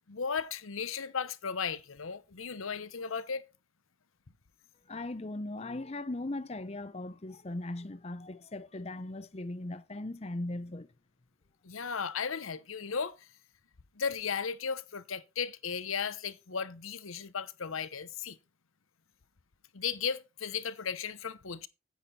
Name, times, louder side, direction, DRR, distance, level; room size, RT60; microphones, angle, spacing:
voice 1, 0.1-3.4 11.6-13.3 14.0-18.4 19.7-21.7, left 6 dB, 85° left, 0.9 m, -35 dB
voice 2, 4.9-10.9, left 2 dB, 30° left, 0.6 m, -38 dB
9.5 x 8.8 x 4.3 m
head